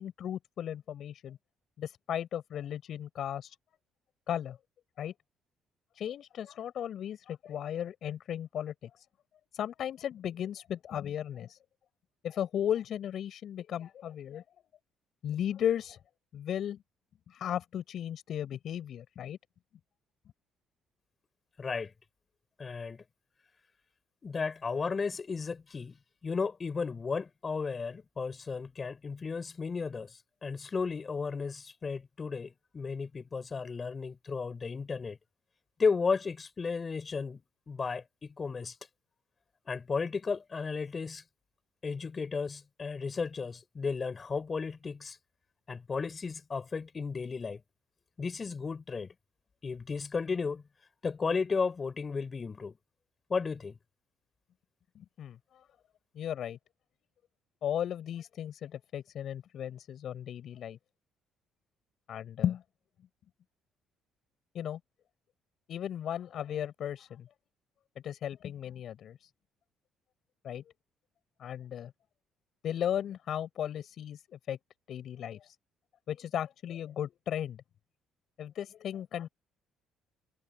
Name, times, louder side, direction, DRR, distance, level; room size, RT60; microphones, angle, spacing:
voice 1, 0.0-1.4 1.8-3.6 4.3-4.6 5.0-5.1 5.9-9.1 9.5-11.6 12.2-14.4 15.2-16.0 16.3-16.8 17.3-19.4 55.0-55.6 56.1-56.6 57.6-60.8 62.1-62.6 64.5-64.8 65.7-67.3 68.0-69.3 70.4-70.6 71.4-71.9 72.6-74.6 74.9-75.6 76.1-77.6 78.4-79.3, left 10 dB, 65° left, 7.3 m, -35 dB
voice 2, 21.6-21.9 22.6-23.0 24.2-26.0 26.2-30.1 30.4-35.2 35.8-38.7 39.7-41.2 41.8-45.2 45.7-47.6 48.2-49.1 49.6-50.6 51.0-52.7 53.3-53.8, left 5 dB, 35° left, 4.3 m, -34 dB
supercardioid pair, 80°, 0 cm